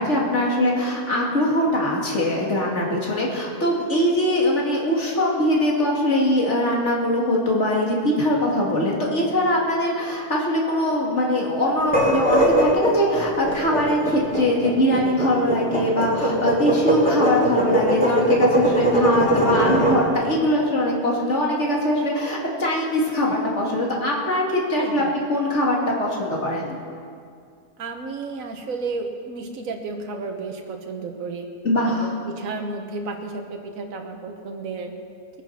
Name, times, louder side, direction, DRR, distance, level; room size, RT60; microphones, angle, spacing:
voice 1, 0.0-25.0 25.3-26.8 31.6-32.1, left 1 dB, 45° left, -2 dB, 2.7 m, -22 dB
sound 1, 11.8-20.0, right 1 dB, 5° left, 3.3 m, -20 dB
voice 2, 24.8-25.1 27.8-31.5 31.9-34.9, right 3 dB, 60° right, 3 dB, 1.6 m, -32 dB
21.0 x 9.2 x 5.8 m, 2.3 s
omnidirectional pair, 1.7 m